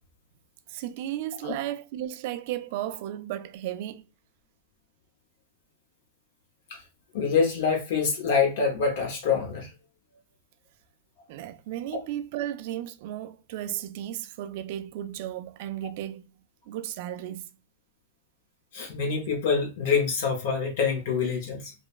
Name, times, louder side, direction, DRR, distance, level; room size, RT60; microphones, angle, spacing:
voice 1, 0.7-4.1 11.3-16.3 16.7-17.5, right 12 dB, 55° right, 0.3 m, -34 dB
voice 2, 7.1-9.7 18.7-21.7, left 5 dB, 65° left, 0.8 m, -26 dB
3.0 x 2.1 x 2.4 m
hypercardioid pair, 125°, 0 cm